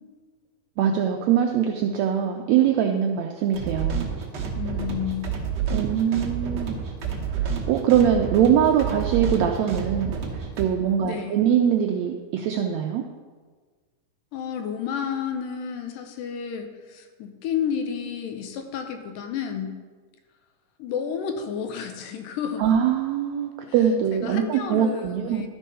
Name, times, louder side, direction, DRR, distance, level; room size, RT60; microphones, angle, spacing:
voice 1, 0.8-4.1 5.7-6.8 7.3-13.0 22.6-25.4, right 9 dB, 85° right, 3 dB, 1.5 m, -22 dB
sound 1, 3.5-10.7, right 6 dB, 70° right, 1.0 m, -29 dB
voice 2, 4.6-5.3 11.0-11.5 14.3-19.7 20.8-22.7 24.1-25.5, left 7 dB, 90° left, 5 dB, 2.4 m, -31 dB
12.5 x 4.6 x 5.5 m, 1.5 s
omnidirectional pair, 3.7 m